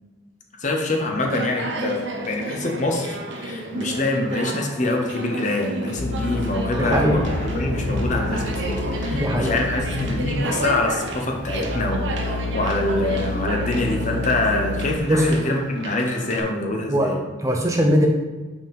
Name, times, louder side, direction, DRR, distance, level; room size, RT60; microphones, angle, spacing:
voice 1, 0.6-17.2, left 2 dB, 40° left, 1 dB, 1.0 m, -25 dB
Conversation, 1.2-16.4, right 1 dB, 70° right, 0.9 m, -32 dB
sound 1, 6.0-10.8 11.4-15.0, left 2 dB, 60° left, 0.5 m, -30 dB
sound 2, 6.8-12.1, left 1 dB, 20° left, 2.0 m, -32 dB
voice 2, 6.8-7.3 9.1-9.6 15.1-15.3 16.9-18.1, equal, 15° right, 2 dB, 0.6 m, -21 dB
5.6 x 5.2 x 5.3 m, 1.2 s
head